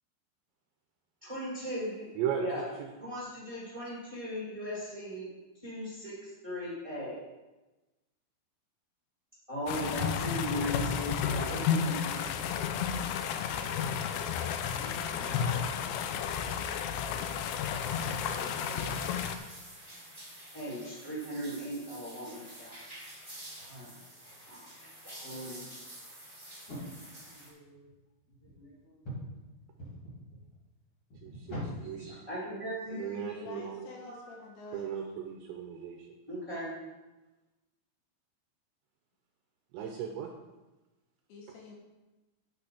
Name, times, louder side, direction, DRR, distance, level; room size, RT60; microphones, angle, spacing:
voice 1, 1.2-2.1 2.3-2.6 3.0-5.3 5.6-7.2 9.5-12.5 15.1-15.6 18.0-18.9 20.5-22.8 23.7-23.9 24.5-24.7 25.0-25.7 32.3-33.4 36.3-36.7, equal, 10° right, -7 dB, 2.1 m, -38 dB
sound 1, 9.7-19.4, left 7 dB, 90° left, 2.6 m, -32 dB
voice 2, 14.7-15.3 33.4-34.9 41.3-41.8, left 3 dB, 75° left, 0 dB, 3.1 m, -48 dB
sound 2, 17.0-27.5, right 1 dB, 5° left, 2.1 m, -49 dB
voice 3, 27.3-27.9 28.4-29.1 29.7-29.9 31.4-32.2 33.9-34.4, equal, 35° left, -7 dB, 3.3 m, -43 dB
voice 4, 32.9-33.8 34.7-36.1 39.7-40.3, right 9 dB, 85° right, 3 dB, 2.7 m, -36 dB
9.1 x 8.7 x 5.0 m, 1.1 s
omnidirectional pair, 5.8 m